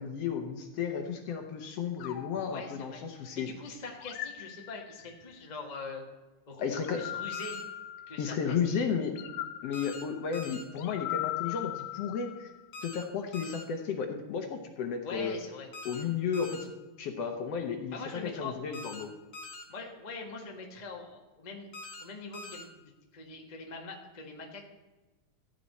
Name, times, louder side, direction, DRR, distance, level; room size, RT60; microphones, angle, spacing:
voice 1, 0.0-3.5 6.6-7.1 8.2-9.2 9.6-12.5 12.8-15.4 15.9-16.7 17.0-19.1, left 6 dB, 65° left, 5 dB, 1.8 m, -33 dB
sound 1, 2.0-3.4 4.0-5.3 6.8-8.5 9.2-12.7, left 13 dB, 85° left, 2.1 m, -40 dB
voice 2, 2.4-6.0 6.5-6.6 6.9-7.6 8.1-8.6 15.0-15.7 17.9-18.6 19.7-21.7 22.0-24.7, left 3 dB, 25° left, 1 dB, 0.9 m, -43 dB
sound 2, 7.3-7.6 9.7-10.0 10.3-10.6 12.7-13.0 13.3-13.6 15.7-16.0 16.3-16.6 18.7-19.0 19.3-19.6 21.7-22.0 22.3-22.6, left 2 dB, 45° left, 2.1 m, -44 dB
15.0 x 9.2 x 4.2 m, 1.2 s
omnidirectional pair, 3.4 m